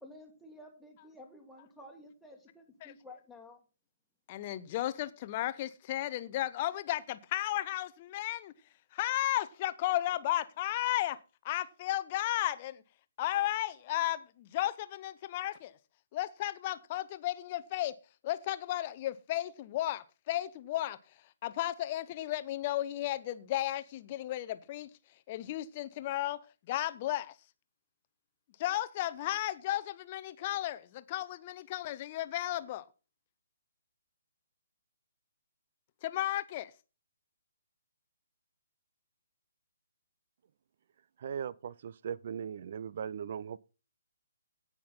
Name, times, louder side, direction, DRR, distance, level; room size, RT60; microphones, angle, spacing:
voice 1, 0.0-3.6, left 1 dB, ahead, 1.8 m, -52 dB
voice 2, 4.3-8.5 8.9-11.2 11.4-12.8 13.2-15.7 16.1-17.9 18.2-21.0 21.4-24.9 25.3-26.4 26.7-27.3 28.6-32.8 36.0-36.7, left 14 dB, 30° left, 0.7 m, -34 dB
voice 3, 41.2-43.6, right 7 dB, 45° right, 0.4 m, -39 dB
17.0 x 5.9 x 4.1 m
figure-of-eight pair, 135°, 0 cm